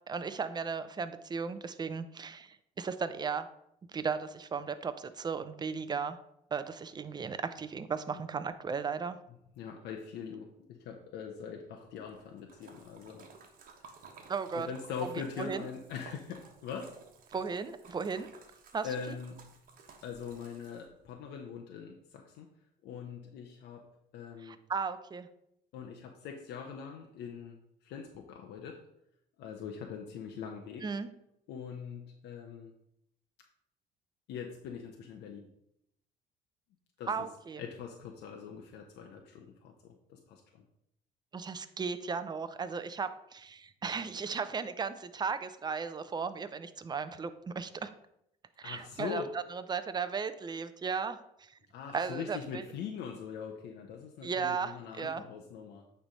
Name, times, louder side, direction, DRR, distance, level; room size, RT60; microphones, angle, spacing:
voice 1, 0.1-3.5 3.9-6.2 6.5-9.2 14.3-14.7 15.4-15.6 17.3-18.3 18.7-18.9 24.4-25.3 30.8-31.1 37.1-37.6 41.3-47.9 48.6-49.2 49.5-51.5 51.9-52.6 54.2-55.2, right 5 dB, 25° right, 11 dB, 0.6 m, -36 dB
voice 2, 9.6-13.3 13.7-13.9 14.5-17.0 18.8-19.5 20.0-22.5 22.8-23.9 24.1-24.6 25.7-28.8 29.4-30.9 31.5-32.7 34.3-35.5 37.0-37.3 37.6-40.6 48.6-49.3 51.7-55.8, left 6 dB, 80° left, 2 dB, 0.8 m, -42 dB
Splash splatter, 12.0-21.1, right 4 dB, 55° right, 1.3 m, -55 dB
8.9 x 3.4 x 5.4 m, 0.77 s
cardioid pair, 110°, 17 cm